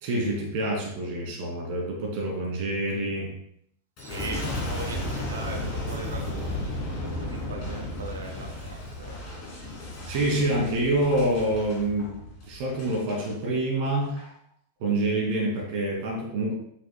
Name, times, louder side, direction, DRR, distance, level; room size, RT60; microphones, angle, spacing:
voice 1, 0.0-3.3 10.1-12.2 12.5-14.2 14.8-16.5, right 1 dB, 50° right, -1 dB, 2.3 m, -27 dB
Boom, 4.0-13.3 13.9-14.3, left 1 dB, 40° left, 2.6 m, -34 dB
voice 2, 4.0-6.5 6.9-9.7, right 3 dB, 70° right, 3 dB, 0.8 m, -40 dB
8.1 x 6.0 x 2.2 m, 0.71 s
figure-of-eight pair, 90°, 0 cm